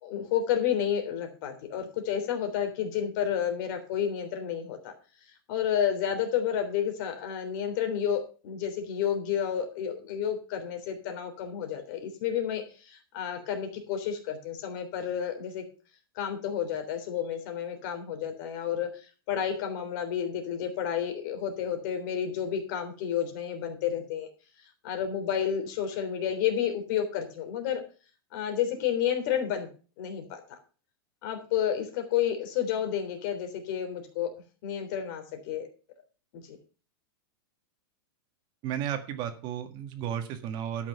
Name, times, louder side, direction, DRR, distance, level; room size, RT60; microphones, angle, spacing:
voice 1, 0.0-4.9 5.5-15.6 16.1-24.3 24.8-27.8 28.3-29.7 30.0-30.6 31.2-34.3 34.6-35.7 36.5-36.6, left 9 dB, 50° left, 7 dB, 3.4 m, -30 dB
voice 2, 38.6-40.9, right 9 dB, 35° right, 7 dB, 1.7 m, -33 dB
12.5 x 6.1 x 7.0 m, 0.37 s
supercardioid pair, 150°, 13 cm